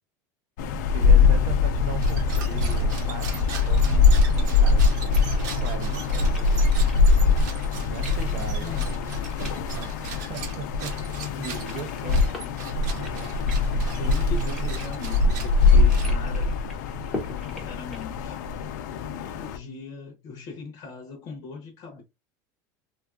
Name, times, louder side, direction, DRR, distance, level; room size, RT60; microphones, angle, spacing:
sound 1, 0.6-19.6, left 4 dB, 80° left, 0.5 m, -22 dB
voice 1, 0.9-5.2 5.6-6.8 7.8-8.9 9.7-11.0 11.4-12.5 13.0-13.8, right 6 dB, 45° right, 0.6 m, -39 dB
sound 2, 1.9-16.5, right 6 dB, 80° right, 1.0 m, -41 dB
sound 3, 3.8-19.0, left 2 dB, ahead, 0.7 m, -45 dB
voice 2, 8.2-8.9 13.6-16.6 17.4-18.4 19.2-22.0, left 4 dB, 35° left, 0.7 m, -39 dB
3.6 x 2.4 x 2.3 m
cardioid pair, 180°, 10 cm